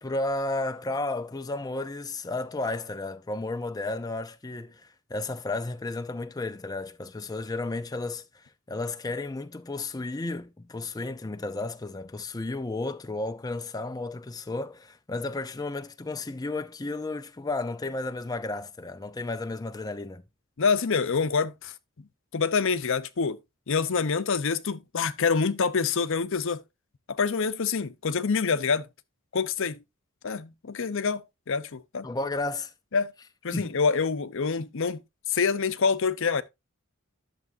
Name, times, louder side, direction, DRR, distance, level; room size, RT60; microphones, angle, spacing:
voice 1, 0.0-20.2 32.0-32.7 33.5-33.7, left 2 dB, 20° left, 0.5 m, -33 dB
voice 2, 20.6-21.7 22.3-23.4 23.7-26.6 27.1-28.9 29.3-29.8 30.2-32.1 32.9-33.1 33.4-35.0 35.3-36.4, left 5 dB, 65° left, 0.7 m, -26 dB
11.0 x 7.0 x 2.6 m
head